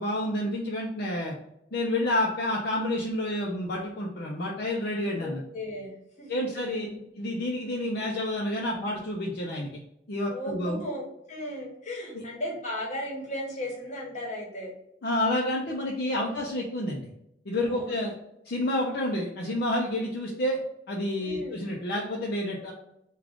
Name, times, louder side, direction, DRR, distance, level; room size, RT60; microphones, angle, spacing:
voice 1, 0.0-1.3 1.7-5.4 6.3-6.9 7.2-9.7 10.1-10.8 12.1-12.2 15.0-17.1 17.5-18.1 18.4-20.6 20.9-22.7, left 1 dB, 60° left, -2 dB, 0.6 m, -29 dB
voice 2, 5.2-7.0 10.3-14.7 16.3-16.4 17.6-18.0 21.2-21.7, left 1 dB, 40° left, -1 dB, 1.1 m, -36 dB
3.6 x 2.3 x 3.5 m, 0.80 s
head